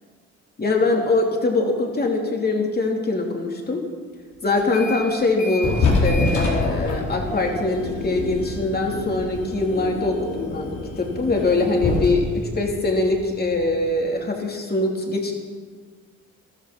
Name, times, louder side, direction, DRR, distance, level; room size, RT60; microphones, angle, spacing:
voice 1, 0.6-3.8 4.4-10.7 11.0-15.3, left 2 dB, 30° left, 1 dB, 3.1 m, -23 dB
sound 1, 4.6-5.1 5.4-13.8, left 2 dB, 75° left, 4.6 m, -26 dB
14.5 x 13.0 x 6.0 m, 1.5 s
cardioid pair, 90°, 30 cm